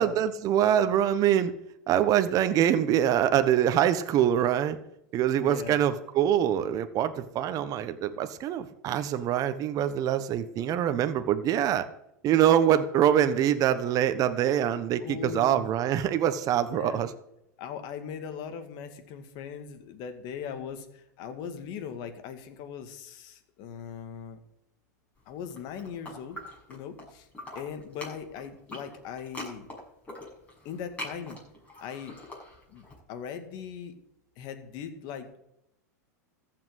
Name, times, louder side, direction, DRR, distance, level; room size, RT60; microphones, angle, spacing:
voice 1, 0.0-1.5 1.9-4.8 5.1-11.9 12.2-17.1, right 10 dB, 40° right, 10 dB, 1.2 m, -24 dB
voice 2, 5.4-5.8 15.0-15.7 16.7-17.0 17.6-24.4 25.3-26.4 26.7-27.3 27.5-29.7 30.6-31.4 31.8-32.2 32.7-33.9 34.4-35.4, left 7 dB, 50° left, 8 dB, 2.2 m, -39 dB
sound 1, 25.4-27.1 27.3-32.9, left 1 dB, 15° left, 6.6 m, -43 dB
14.5 x 5.9 x 8.1 m, 0.79 s
hypercardioid pair, 105°, 9 cm